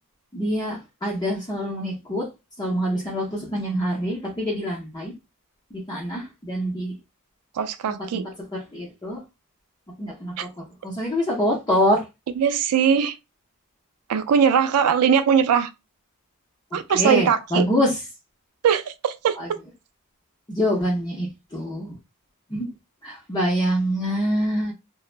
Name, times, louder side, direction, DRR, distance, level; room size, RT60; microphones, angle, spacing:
voice 1, 0.3-2.3 2.6-5.1 5.7-7.0 7.9-8.2 8.5-9.2 10.0-12.0 16.9-18.0 19.4-19.5 20.5-22.0 22.5-22.7 23.0-24.7, equal, 20° left, 0.5 m, -25 dB
voice 2, 7.5-8.3 10.4-10.5 12.4-13.2 14.1-15.7 16.7-17.7 18.6-19.4, right 7 dB, 80° right, 0.3 m, -20 dB
3.1 x 2.0 x 2.4 m
head